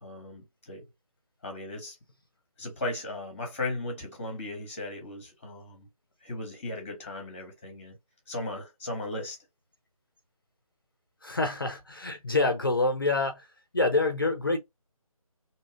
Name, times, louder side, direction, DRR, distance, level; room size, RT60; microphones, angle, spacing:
voice 1, 0.0-0.8 1.4-2.0 2.6-5.9 6.2-8.0 8.3-9.4, left 2 dB, 20° left, 0.9 m, -36 dB
voice 2, 11.2-13.5 13.7-14.6, left 3 dB, 40° left, 0.5 m, -26 dB
2.7 x 2.3 x 2.8 m
figure-of-eight pair, 160°, 19 cm